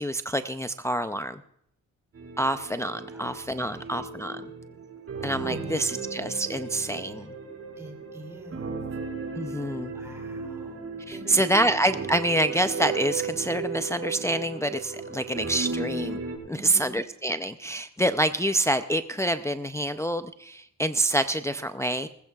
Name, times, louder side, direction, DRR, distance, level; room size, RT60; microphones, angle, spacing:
voice 1, 0.0-1.4 2.4-4.5 5.2-7.3 9.3-9.9 11.1-16.2 16.5-22.1, right 1 dB, 10° left, 9 dB, 0.5 m, -27 dB
sound 1, 2.1-16.4, right 4 dB, 45° right, 5.2 m, -35 dB
voice 2, 3.1-4.1 5.4-5.9 7.8-8.8 9.9-11.3 16.5-16.9, right 1 dB, 10° right, 2 dB, 2.8 m, -45 dB
19.5 x 15.0 x 2.4 m, 0.73 s
cardioid pair, 90°, 31 cm